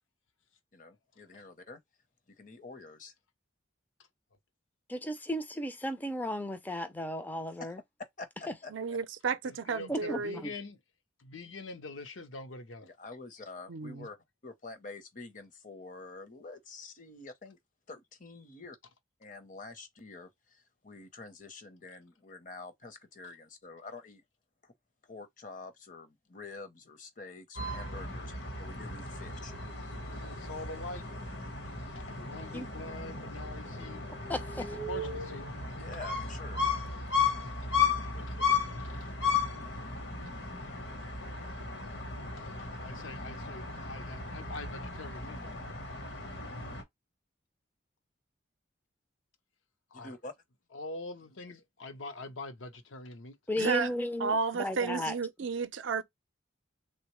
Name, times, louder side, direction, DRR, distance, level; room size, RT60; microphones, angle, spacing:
voice 1, 0.7-1.8 2.4-3.1 8.2-8.3 8.6-9.0 12.8-14.2 14.4-17.6 17.9-18.8 19.2-24.2 24.6-24.7 25.0-28.3 28.6-29.5 35.8-36.6 49.9-50.3, left 3 dB, 40° left, 0.7 m, -47 dB
voice 2, 4.9-7.8 9.9-10.2 32.5-32.7 34.3-34.7 53.5-55.2, left 1 dB, 10° left, 0.4 m, -34 dB
voice 3, 8.7-10.4 13.7-14.1 53.6-53.9 54.2-56.0, right 5 dB, 70° right, 0.5 m, -32 dB
voice 4, 9.4-10.8 11.2-12.9 30.0-31.1 31.9-34.1 34.5-35.5 37.6-37.7 37.9-38.5 38.8-39.3 42.2-45.8 49.9-50.2 50.7-53.4, left 2 dB, 75° left, 0.7 m, -45 dB
sound 1, 27.6-46.8, left 5 dB, 60° left, 1.0 m, -35 dB
3.5 x 2.1 x 2.9 m
head